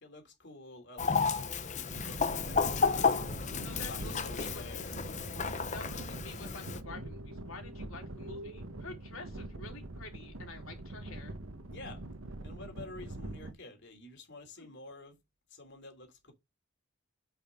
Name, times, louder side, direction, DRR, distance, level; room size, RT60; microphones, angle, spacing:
voice 1, 0.0-3.3 3.6-6.0 11.7-12.0 12.4-15.2 15.5-16.3, left 2 dB, 50° left, 2.9 m, -50 dB
Chicken rooster, 1.0-6.8, left 5 dB, 35° left, 0.7 m, -32 dB
sound 1, 1.9-13.5, right 2 dB, 70° right, 1.2 m, -44 dB
voice 2, 3.6-4.6 5.7-11.3 11.8-11.9 14.6-14.7, left 3 dB, 70° left, 3.5 m, -48 dB
sound 2, 6.8-9.8 10.7-11.2, equal, 45° right, 2.5 m, -52 dB
9.3 x 5.6 x 3.7 m
head